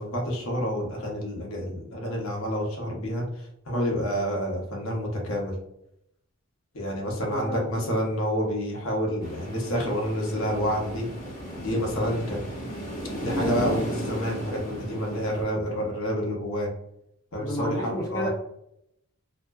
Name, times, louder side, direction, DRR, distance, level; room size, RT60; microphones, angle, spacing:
voice 1, 0.0-5.5 6.7-11.1 11.6-12.7 13.2-16.7 17.3-18.3, equal, 60° left, -1 dB, 0.7 m, -29 dB
voice 2, 7.2-7.9 17.4-18.3, equal, 15° left, -3 dB, 0.3 m, -32 dB
sound 1, 9.2-15.4, equal, 35° left, 1.0 m, -35 dB
2.6 x 2.1 x 2.2 m, 0.76 s
head